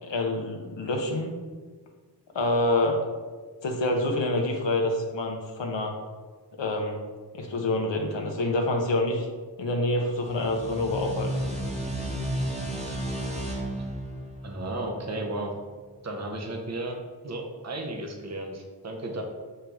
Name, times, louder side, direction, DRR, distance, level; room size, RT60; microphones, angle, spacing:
voice 1, 0.0-1.3 2.3-3.1 3.6-6.0 6.6-7.1 7.3-9.3 9.6-11.3, left 2 dB, 90° left, 2 dB, 0.7 m, -27 dB
sound 1, 10.1-15.5, right 1 dB, 15° right, 1.2 m, -33 dB
voice 2, 14.4-15.5 16.0-19.2, right 2 dB, 40° right, 2 dB, 0.8 m, -34 dB
6.2 x 4.5 x 3.4 m, 1.4 s
wide cardioid pair, 70°, 43 cm